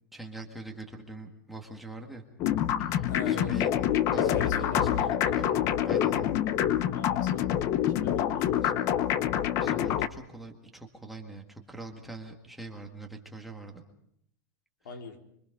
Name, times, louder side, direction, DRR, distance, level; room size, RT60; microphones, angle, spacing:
voice 1, 0.1-2.2 2.8-4.4 4.7-5.6 5.8-6.3 8.6-8.7 9.6-13.8 14.8-15.0, right 2 dB, ahead, 1 dB, 1.9 m, -43 dB
sound 1, 2.4-10.1, left 10 dB, 30° left, 0.9 m, -26 dB
voice 2, 3.1-3.5 4.1-5.1 6.9-7.5 7.9-8.5 14.9-15.2, left 5 dB, 85° left, 5 dB, 3.7 m, -41 dB
25.5 x 24.5 x 5.4 m, 0.71 s
supercardioid pair, 165°, 10 cm